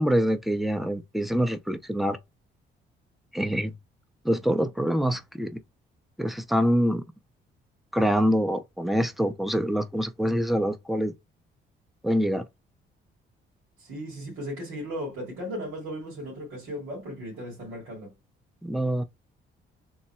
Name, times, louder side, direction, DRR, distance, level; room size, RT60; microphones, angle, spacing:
voice 1, 0.0-2.2 3.3-3.7 4.2-5.6 6.2-7.0 7.9-11.1 12.0-12.4 18.6-19.0, equal, ahead, 0.6 m, -25 dB
voice 2, 13.8-18.1, equal, 85° right, 2.1 m, -36 dB
3.7 x 2.1 x 4.3 m
cardioid pair, 90°, 20 cm